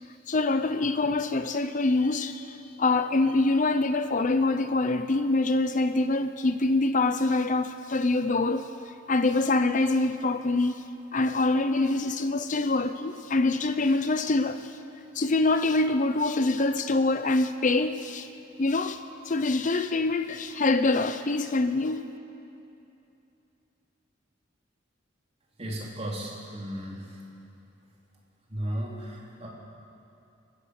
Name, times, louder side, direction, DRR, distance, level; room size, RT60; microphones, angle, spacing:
voice 1, 0.3-8.7 9.1-10.8 11.1-14.8 15.1-18.3 18.6-22.0, left 2 dB, 40° left, 0.7 m, -25 dB
voice 2, 25.6-27.2 28.5-29.5, right 1 dB, 35° right, 3.8 m, -35 dB
28.0 x 15.0 x 6.6 m
head